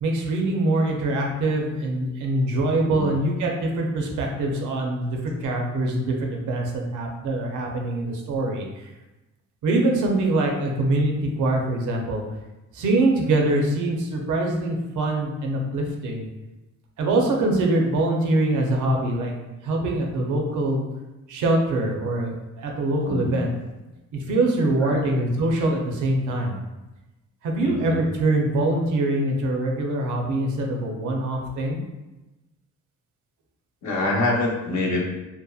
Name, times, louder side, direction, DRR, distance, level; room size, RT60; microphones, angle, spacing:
voice 1, 0.0-8.9 9.6-12.2 12.7-16.3 17.0-19.3 19.6-20.8 21.3-23.5 24.1-26.5 27.4-31.8, right 2 dB, 80° right, 1 dB, 0.6 m, -24 dB
voice 2, 23.0-23.4 24.8-25.0 27.6-28.0 33.8-35.0, left 2 dB, 70° left, -2 dB, 0.7 m, -25 dB
2.8 x 2.1 x 2.3 m, 1.0 s
cardioid pair, 90°, 30 cm